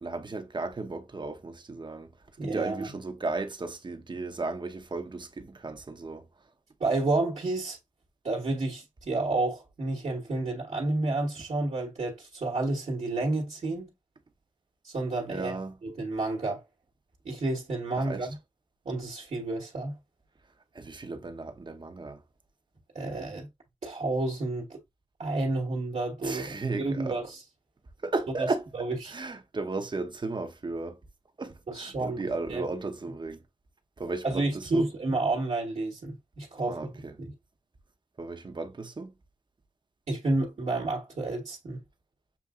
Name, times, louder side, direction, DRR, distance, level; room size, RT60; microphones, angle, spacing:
voice 1, 0.0-2.1 2.4-6.2 15.3-15.7 18.1-18.3 20.7-22.2 26.2-27.2 28.0-28.6 29.1-31.0 31.4-33.4 34.0-34.9 36.7-37.1 38.2-39.1, right 3 dB, 40° right, 0.9 m, -35 dB
voice 2, 2.4-2.9 6.8-7.8 8.2-13.9 14.8-16.6 17.2-18.4 18.8-19.9 22.9-23.5 23.8-24.8 25.2-27.4 28.4-28.5 28.7-29.1 31.7-32.7 34.2-37.3 40.1-41.8, right 2 dB, 65° right, 1.4 m, -30 dB
7.0 x 2.7 x 2.4 m
cardioid pair, 65°, 12 cm